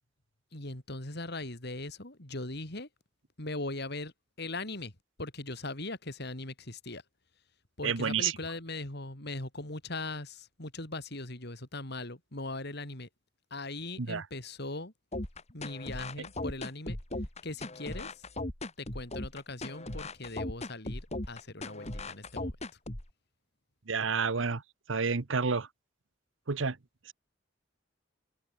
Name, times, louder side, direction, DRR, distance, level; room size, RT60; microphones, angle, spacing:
voice 1, 0.5-2.9 3.4-4.9 5.2-7.0 7.8-13.1 13.5-14.9 15.5-17.0 17.4-18.3 18.8-22.6, left 2 dB, 60° left, 4.0 m, -40 dB
voice 2, 7.8-8.3 14.1-14.2 23.9-24.6 24.9-25.7 26.5-26.8, right 5 dB, 80° right, 1.0 m, -29 dB
sound 1, 15.1-23.1, left 2 dB, 35° left, 2.6 m, -38 dB
head